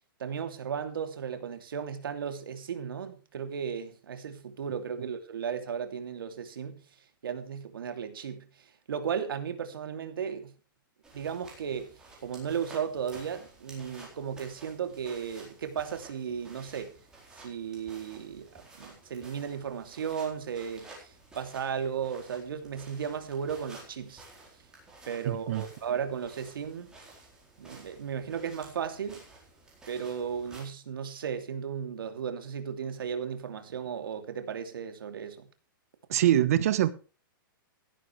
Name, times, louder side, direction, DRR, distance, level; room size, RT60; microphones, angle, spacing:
voice 1, 0.2-6.8 7.2-10.5 11.1-11.9 12.2-16.9 17.4-24.2 25.1-26.9 27.6-29.2 29.9-35.5, right 7 dB, 80° right, 2.9 m, -35 dB
sound 1, 11.0-30.6, right 2 dB, 5° right, 4.2 m, -53 dB
voice 2, 25.2-25.6 36.1-36.9, right 12 dB, 45° right, 1.1 m, -24 dB
16.0 x 11.5 x 3.3 m
hypercardioid pair, 175°, 12 cm